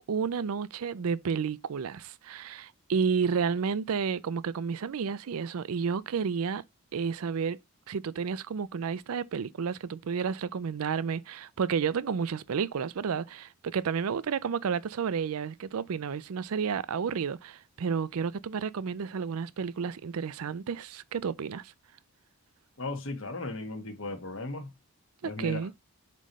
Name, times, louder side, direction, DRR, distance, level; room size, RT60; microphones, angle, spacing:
voice 1, 0.1-6.6 6.9-7.6 7.9-21.7 25.2-25.7, right 6 dB, 75° right, 0.4 m, -31 dB
voice 2, 22.8-24.7 25.2-25.7, left 2 dB, 60° left, 1.7 m, -36 dB
7.5 x 3.2 x 5.3 m
head